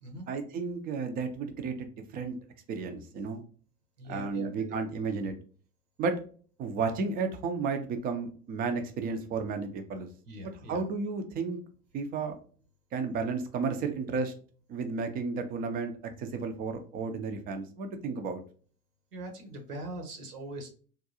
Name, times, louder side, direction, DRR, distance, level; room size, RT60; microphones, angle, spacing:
voice 1, 0.3-2.4 2.7-3.4 4.1-5.3 6.0-6.2 6.6-10.1 10.7-11.6 11.9-12.3 12.9-14.3 14.7-15.9 16.2-18.4, right 4 dB, 20° right, 7 dB, 0.3 m, -32 dB
voice 2, 4.0-4.8 10.2-10.8 19.1-20.7, right 1 dB, 80° right, 3 dB, 1.1 m, -42 dB
3.6 x 2.2 x 2.7 m, 0.42 s
hypercardioid pair, 85°, 46 cm